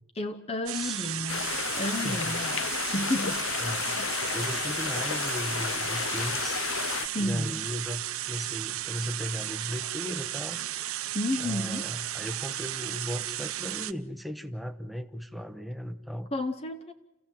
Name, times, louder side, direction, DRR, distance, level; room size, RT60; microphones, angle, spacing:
voice 1, 0.2-3.5 3.9-4.2 7.1-7.6 11.1-11.9 16.3-16.9, left 1 dB, 30° left, 8 dB, 0.7 m, -32 dB
voice 2, 0.7-1.1 2.0-2.3 3.6-4.0 4.3-6.6 7.2-10.6 11.4-16.3, equal, ahead, 8 dB, 0.9 m, -36 dB
sound 1, 0.7-13.9, right 13 dB, 85° right, 0.7 m, -34 dB
sound 2, 1.3-7.1, left 8 dB, 65° left, 0.6 m, -32 dB
28.5 x 15.5 x 7.4 m, 1.0 s
head